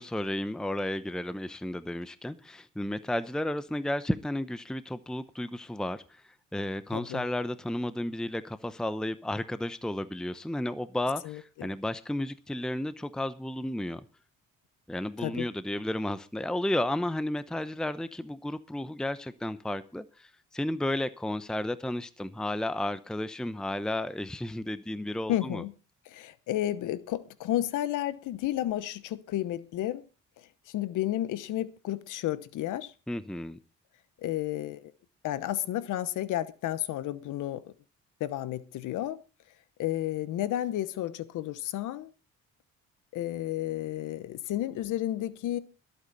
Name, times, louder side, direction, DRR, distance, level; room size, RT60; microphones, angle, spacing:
voice 1, 0.0-14.0 14.9-25.6 33.1-33.6, left 1 dB, ahead, 0.8 m, -33 dB
voice 2, 6.9-7.2 11.2-11.7 15.2-15.5 25.3-25.7 26.1-30.0 30.7-32.9 34.2-34.9 35.2-37.7 38.2-39.2 39.8-42.1 43.1-45.6, left 13 dB, 85° left, 1.0 m, -32 dB
21.5 x 8.5 x 4.0 m
cardioid pair, 90°, 30 cm